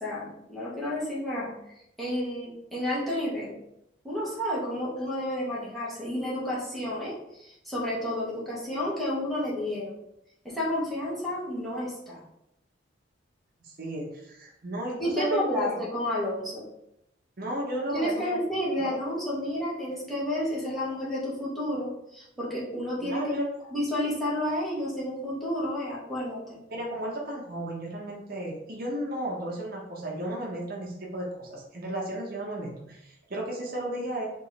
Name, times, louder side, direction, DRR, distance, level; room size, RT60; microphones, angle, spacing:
voice 1, 0.0-1.5 2.0-3.5 4.0-10.0 10.4-12.2 15.0-16.7 17.9-23.3 23.7-26.6, left 1 dB, ahead, -9 dB, 1.3 m, -31 dB
voice 2, 13.6-15.8 17.4-18.4 18.8-19.0 23.0-23.5 26.7-34.3, right 1 dB, 50° right, -3 dB, 0.9 m, -34 dB
3.6 x 2.9 x 4.1 m, 0.80 s
head